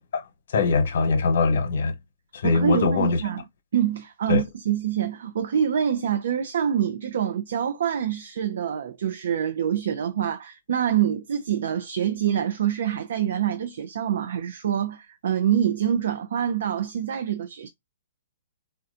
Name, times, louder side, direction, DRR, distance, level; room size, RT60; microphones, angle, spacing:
voice 1, 0.1-2.0 2.3-3.2 4.3-4.4, left 4 dB, 65° left, 1.0 m, -22 dB
voice 2, 2.4-3.4 3.7-17.7, right 9 dB, 70° right, 0.5 m, -25 dB
4.3 x 2.3 x 2.5 m
hypercardioid pair, 145°, 0 cm